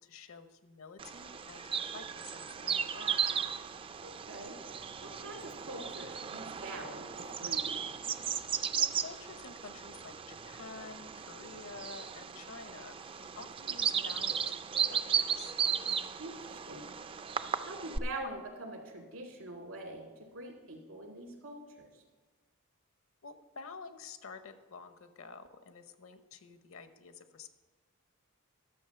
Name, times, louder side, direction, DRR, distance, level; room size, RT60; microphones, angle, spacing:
voice 1, 0.0-3.3 8.8-15.5 23.2-27.5, left 4 dB, 70° left, 10 dB, 0.8 m, -50 dB
Bird vocalization bird call bird song, 1.0-18.0, right 7 dB, 25° right, 0.3 m, -36 dB
voice 2, 4.0-4.6 5.0-7.9 16.2-16.9 17.6-21.9, right 2 dB, 80° right, 1 dB, 2.2 m, -44 dB
12.0 x 7.0 x 5.8 m, 1.3 s
head